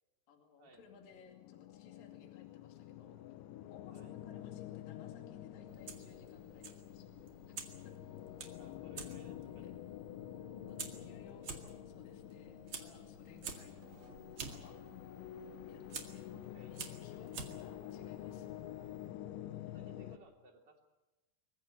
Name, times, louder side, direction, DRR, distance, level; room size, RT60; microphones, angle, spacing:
voice 1, 0.3-3.2 3.7-7.1 7.6-8.0 9.2-9.7 10.7-14.0 14.5-14.8 15.7-18.6, left 5 dB, 50° left, 3 dB, 3.8 m, -61 dB
sound 1, 0.8-20.2, left 12 dB, 80° left, 3.2 m, -48 dB
Fire, 5.7-19.1, right 5 dB, 50° right, 1.5 m, -51 dB
voice 2, 8.6-9.7 13.8-14.2 16.3-16.9 18.7-19.0 19.6-20.8, right 3 dB, 30° right, 2 dB, 2.7 m, -62 dB
23.0 x 15.5 x 9.9 m, 1.1 s
omnidirectional pair, 5.6 m